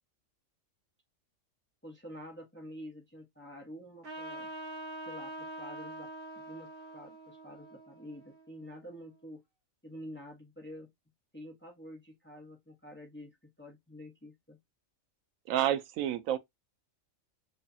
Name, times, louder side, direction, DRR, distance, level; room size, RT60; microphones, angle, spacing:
voice 1, 1.8-4.5 5.1-6.1 6.3-6.7 6.9-9.4 9.8-10.9 11.3-14.6, equal, 10° left, 1.0 m, -48 dB
Trumpet, 4.0-9.0, right 1 dB, 60° right, 1.8 m, -45 dB
voice 2, 15.5-16.4, right 11 dB, 85° right, 1.0 m, -29 dB
4.6 x 2.4 x 2.6 m
omnidirectional pair, 1.4 m